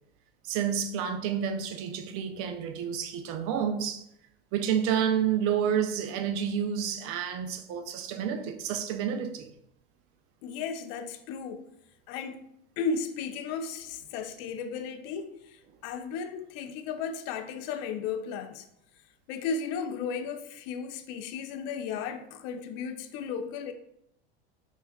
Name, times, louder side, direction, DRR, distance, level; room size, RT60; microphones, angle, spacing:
voice 1, 0.4-4.0 4.5-9.5, right 8 dB, 45° right, 0.5 m, -29 dB
voice 2, 10.4-11.6 12.1-12.4 12.8-18.6 19.3-23.7, left 5 dB, 50° left, 0.5 m, -35 dB
5.0 x 2.4 x 2.2 m
hypercardioid pair, 85°, 32 cm